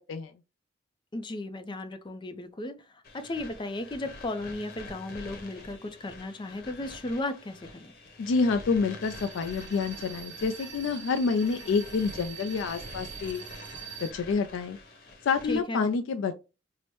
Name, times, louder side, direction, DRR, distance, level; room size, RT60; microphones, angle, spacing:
voice 1, 1.1-7.9 15.5-15.9, left 2 dB, 25° left, 0.4 m, -35 dB
sound 1, 3.0-15.6, left 2 dB, 55° left, 0.9 m, -47 dB
voice 2, 8.2-13.4 14.0-14.8 15.2-16.3, left 5 dB, 85° left, 0.4 m, -28 dB
sound 2, 9.0-14.1, right 7 dB, 70° right, 0.8 m, -44 dB
4.6 x 2.0 x 3.0 m
head